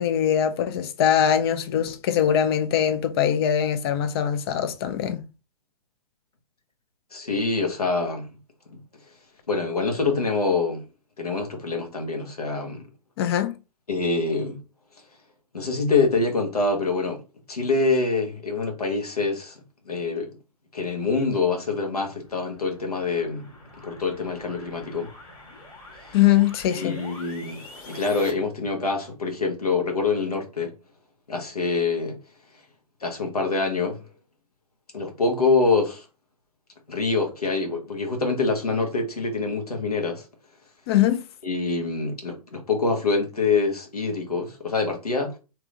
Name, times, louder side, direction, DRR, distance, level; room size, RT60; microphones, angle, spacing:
voice 1, 0.0-5.2 13.2-13.6 26.1-27.0 40.9-41.2, left 10 dB, 40° left, 0.5 m, -22 dB
voice 2, 7.1-8.3 9.5-10.8 11.2-12.9 13.9-14.6 15.5-17.2 17.5-19.6 19.8-20.4 20.7-23.5 23.8-25.1 26.0-26.1 26.8-30.7 31.3-32.2 33.0-34.0 34.9-36.0 36.9-40.2 41.4-45.4, left 3 dB, 85° left, 1.2 m, -25 dB
sound 1, 21.9-28.3, left 2 dB, 20° left, 1.5 m, -45 dB
3.4 x 2.9 x 2.4 m
figure-of-eight pair, 120°, 19 cm